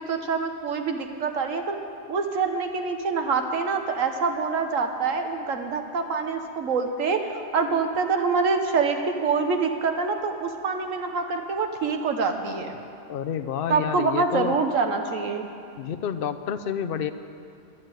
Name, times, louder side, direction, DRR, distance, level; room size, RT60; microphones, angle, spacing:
voice 1, 0.0-1.8 2.1-12.8 13.7-15.5, right 4 dB, 65° right, 5 dB, 1.5 m, -26 dB
voice 2, 13.1-14.5 15.8-17.1, left 8 dB, 55° left, 10 dB, 0.7 m, -29 dB
13.0 x 9.4 x 9.2 m, 2.6 s
omnidirectional pair, 1.5 m